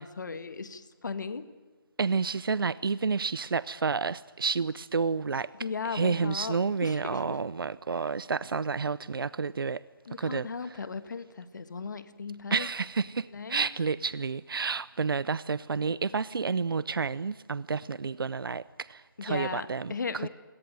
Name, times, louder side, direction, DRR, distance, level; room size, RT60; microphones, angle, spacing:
voice 1, 0.0-1.4 5.6-6.6 6.8-7.3 10.1-12.7 13.3-13.6 19.2-20.3, left 5 dB, 55° left, 1.7 m, -36 dB
voice 2, 2.0-5.5 5.8-9.8 10.2-10.8 12.5-20.3, right 5 dB, 75° right, 0.7 m, -30 dB
26.5 x 18.0 x 9.1 m
hypercardioid pair, 170°, 12 cm